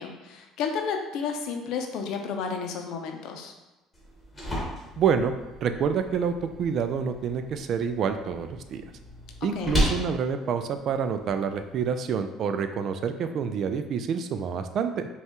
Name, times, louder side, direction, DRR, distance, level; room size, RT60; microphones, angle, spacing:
voice 1, 0.0-3.5 9.6-9.8, left 6 dB, 70° left, 4 dB, 0.6 m, -32 dB
sound 1, 3.9-11.9, equal, 10° left, 1.3 m, -34 dB
voice 2, 5.0-5.3 5.6-8.8 9.4-15.1, right 6 dB, 50° right, 8 dB, 0.3 m, -27 dB
5.4 x 2.4 x 2.9 m, 1.0 s
cardioid pair, 120°, 0 cm